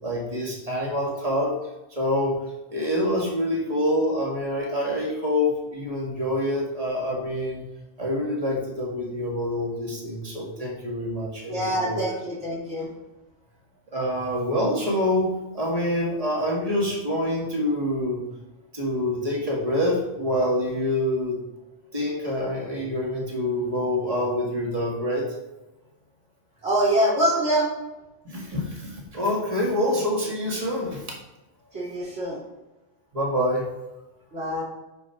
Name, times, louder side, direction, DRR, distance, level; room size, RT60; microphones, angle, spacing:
voice 1, 0.0-1.5 1.9-2.4 2.7-7.6 8.0-12.1 13.9-18.2 18.7-21.4 21.9-25.3 28.2-31.0 33.1-33.7, left 1 dB, 30° right, -2 dB, 2.0 m, -26 dB
voice 2, 11.5-12.9 22.2-22.4 26.6-27.7 31.7-32.4 34.3-34.6, right 1 dB, 60° right, -6 dB, 3.1 m, -24 dB
9.3 x 4.4 x 5.7 m, 1.0 s
omnidirectional pair, 1.3 m